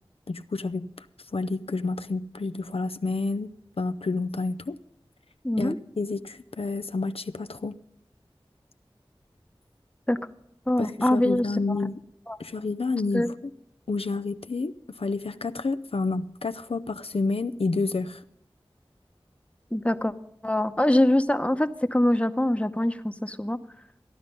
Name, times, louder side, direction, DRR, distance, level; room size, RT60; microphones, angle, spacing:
voice 1, 0.3-0.9 1.3-4.8 5.6-7.8 10.8-12.0 12.4-13.3 13.9-18.2, left 3 dB, 80° left, 0.5 m, -29 dB
voice 2, 5.4-5.8 10.1-10.2 10.7-11.5 12.3-12.4 13.1-13.3 19.7-20.1 20.4-23.6, left 1 dB, 15° left, 0.8 m, -23 dB
15.0 x 11.0 x 5.3 m
wide cardioid pair, 40°, 10 cm